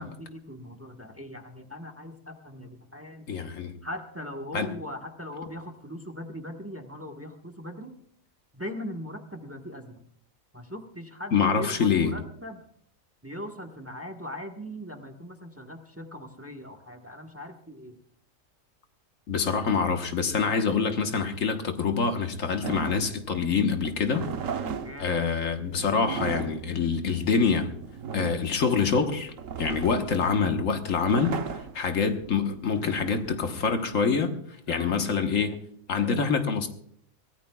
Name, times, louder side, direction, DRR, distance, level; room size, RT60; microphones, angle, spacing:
voice 1, 0.0-3.3 3.8-8.0 8.5-10.0 10.5-12.6 13.2-18.0 24.8-25.1 34.7-35.0, equal, 10° right, 3 dB, 1.2 m, -40 dB
voice 2, 3.3-3.8 4.5-4.8 11.3-12.1 19.3-24.3 25.0-27.7 28.1-29.3 29.6-34.3 34.7-35.6 35.9-36.7, left 5 dB, 75° left, 6 dB, 1.6 m, -26 dB
sound 1, 22.6-34.0, right 6 dB, 75° right, 1.2 m, -37 dB
23.5 x 16.5 x 2.3 m, 0.65 s
omnidirectional pair, 1.4 m